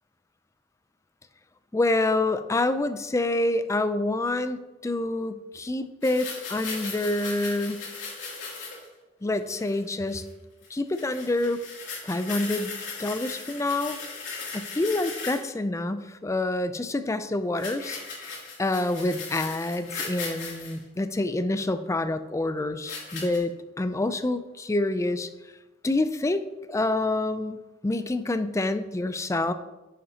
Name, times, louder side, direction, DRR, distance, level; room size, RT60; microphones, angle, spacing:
voice 1, 1.7-7.9 9.2-10.2 10.7-11.6 12.0-12.7 13.0-14.0 14.5-18.0 18.6-25.3 25.8-27.6 27.8-29.5, left 2 dB, 15° left, 11 dB, 0.4 m, -27 dB
sound 1, 6.0-8.9 9.4-9.8 10.1-10.3 10.6-10.7 10.9-15.5 17.6-20.7 21.6-21.7 22.8-23.4, left 4 dB, 90° left, 2.8 m, -37 dB
10.0 x 6.9 x 2.8 m, 1.1 s
head